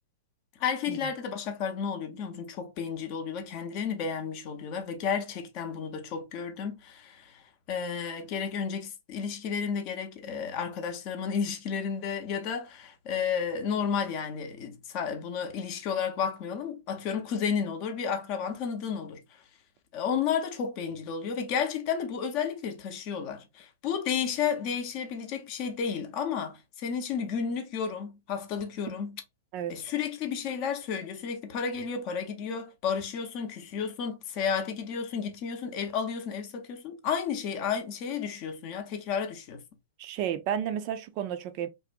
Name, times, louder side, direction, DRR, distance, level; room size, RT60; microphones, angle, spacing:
voice 1, 0.6-7.4 7.7-19.2 19.9-29.2 29.7-39.6, left 7 dB, 45° left, 0.6 m, -32 dB
voice 2, 40.0-41.7, right 9 dB, 45° right, 0.4 m, -32 dB
2.6 x 2.0 x 2.4 m
hypercardioid pair, 125°, 0 cm